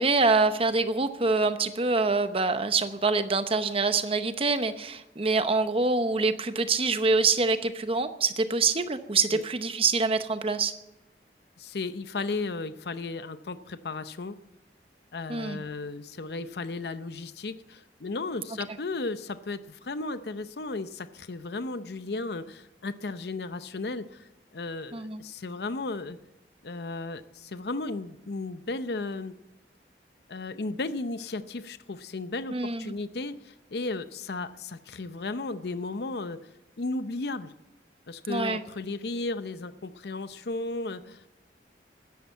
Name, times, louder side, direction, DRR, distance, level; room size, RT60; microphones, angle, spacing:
voice 1, 0.0-10.7 15.3-15.6 24.9-25.2 32.5-32.9 38.3-38.6, right 3 dB, 30° right, 10 dB, 0.8 m, -25 dB
voice 2, 11.6-14.4 15.1-24.3 24.5-26.2 26.6-29.3 30.3-36.4 36.8-37.5 38.1-41.2, left 3 dB, 65° left, 12 dB, 0.7 m, -34 dB
13.0 x 10.5 x 8.2 m, 0.94 s
head